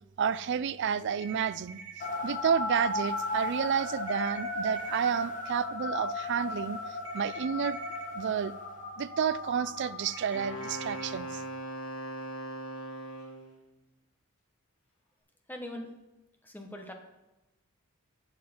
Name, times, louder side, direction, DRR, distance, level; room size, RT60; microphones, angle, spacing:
voice 1, 0.2-1.8 2.2-6.8 7.1-7.8 8.1-8.5 9.0-11.4, right 7 dB, 50° right, 16 dB, 0.4 m, -30 dB
sound 1, 1.1-2.1 4.1-5.1 7.0-8.0 10.0-11.0, right 5 dB, 70° right, 1.8 m, -46 dB
sound 2, 2.0-11.5, left 2 dB, 35° left, 1.2 m, -36 dB
Wind instrument woodwind instrument, 10.3-13.5, right 1 dB, 80° left, 1.8 m, -39 dB
voice 2, 15.5-15.9 16.4-16.9, left 1 dB, 10° left, 3 dB, 1.1 m, -41 dB
12.0 x 7.3 x 4.4 m, 1.0 s
head